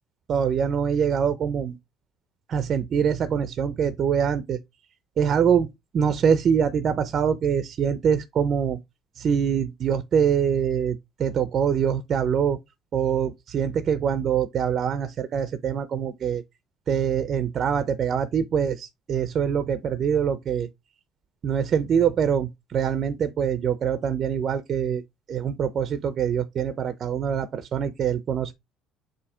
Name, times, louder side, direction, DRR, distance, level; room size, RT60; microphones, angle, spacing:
voice 1, 0.3-1.8 2.5-4.6 5.2-5.7 5.9-8.8 9.1-12.6 12.9-16.4 16.9-20.7 21.4-25.0 25.3-28.5, right 7 dB, 35° right, 0.5 m, -24 dB
7.0 x 2.7 x 4.9 m
cardioid pair, 175°, 0 cm